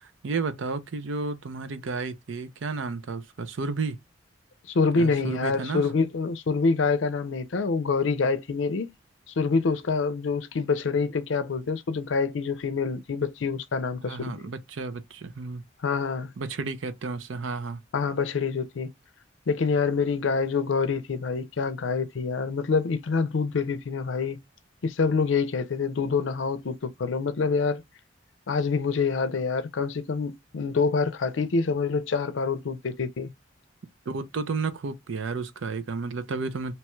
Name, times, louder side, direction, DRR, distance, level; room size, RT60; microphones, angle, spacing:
voice 1, 0.0-4.0 4.9-5.8 14.1-15.6 16.4-17.8 34.1-36.8, right 4 dB, 80° right, 0.5 m, -32 dB
voice 2, 4.7-8.9 9.3-14.4 15.8-16.3 17.9-18.9 19.5-24.4 24.8-27.8 28.5-33.3, left 4 dB, 80° left, 0.5 m, -26 dB
2.9 x 2.2 x 3.0 m
head